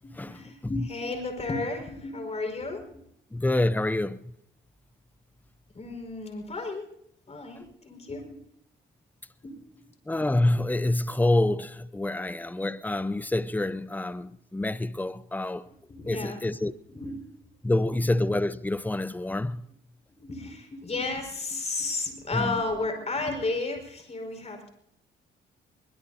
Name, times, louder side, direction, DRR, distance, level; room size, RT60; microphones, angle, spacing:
voice 1, 0.0-2.9 5.7-6.8 7.3-8.4 9.4-9.6 15.9-16.4 16.9-17.3 20.2-24.7, left 3 dB, 35° left, 5.1 m, -33 dB
voice 2, 3.3-4.3 10.1-15.7 16.1-16.7 17.6-19.6 22.3-22.6, left 1 dB, 10° left, 0.7 m, -27 dB
22.5 x 21.5 x 2.8 m
cardioid pair, 90°, 20 cm